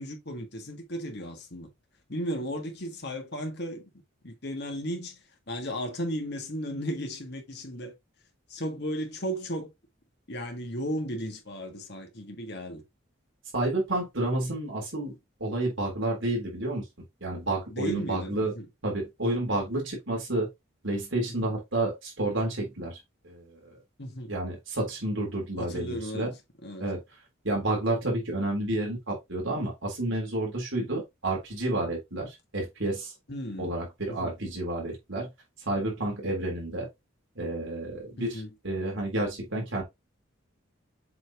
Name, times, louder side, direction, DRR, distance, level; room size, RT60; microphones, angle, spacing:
voice 1, 0.0-1.7 2.1-3.9 4.2-5.2 5.5-7.9 8.5-9.7 10.3-12.8 17.7-18.7 24.0-24.3 25.5-26.3 26.6-26.9 33.3-33.7 34.1-34.3 38.2-38.5, equal, 50° left, 1.7 m, -35 dB
voice 2, 13.5-15.1 15.4-16.8 17.2-18.5 18.8-20.5 20.8-23.0 23.2-23.8 24.3-26.3 26.8-27.0 27.4-33.1 33.6-35.3 35.7-36.9 37.4-39.8, right 1 dB, 65° right, 3.5 m, -30 dB
7.6 x 4.4 x 2.9 m
head